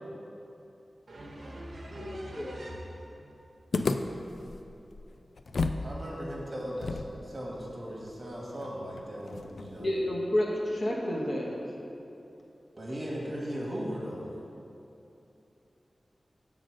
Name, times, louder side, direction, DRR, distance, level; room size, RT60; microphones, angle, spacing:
voice 1, 1.1-3.1, right 1 dB, 65° right, -2 dB, 1.0 m, -43 dB
voice 2, 2.0-2.5 9.6-11.6, left 1 dB, 50° left, -3 dB, 1.1 m, -30 dB
sound 1, 3.7-5.9 6.1-6.2 6.8-9.9, left 3 dB, 75° left, 0.3 m, -34 dB
voice 3, 5.8-7.0 7.2-9.9 12.8-14.3, equal, 35° right, -4 dB, 1.6 m, -37 dB
7.4 x 3.9 x 6.4 m, 2.8 s
wide cardioid pair, 105°, 0 cm